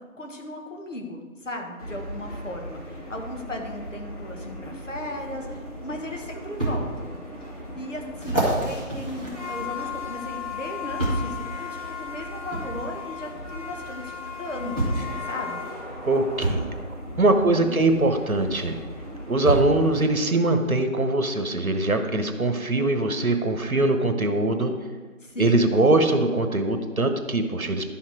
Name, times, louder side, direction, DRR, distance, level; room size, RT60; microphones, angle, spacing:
voice 1, 0.2-7.2 7.7-15.7 17.3-17.7 25.2-25.6, left 1 dB, 60° left, 2 dB, 1.7 m, -36 dB
sound 1, 1.8-20.1, left 3 dB, 25° left, 1.7 m, -37 dB
sound 2, 6.6-6.8 7.4-7.5 8.2-10.1 11.0-11.3 12.5-12.7 13.9-14.0 14.8-15.1 16.4-16.6 18.3-18.4 19.4-19.8 20.6-20.7, right 1 dB, 5° left, 1.1 m, -27 dB
voice 2, 16.1-16.6 17.2-18.8 19.3-24.7 25.4-27.8, right 2 dB, 80° right, 7 dB, 1.3 m, -22 dB
11.5 x 5.8 x 4.6 m, 1.4 s
figure-of-eight pair, 160°, 42 cm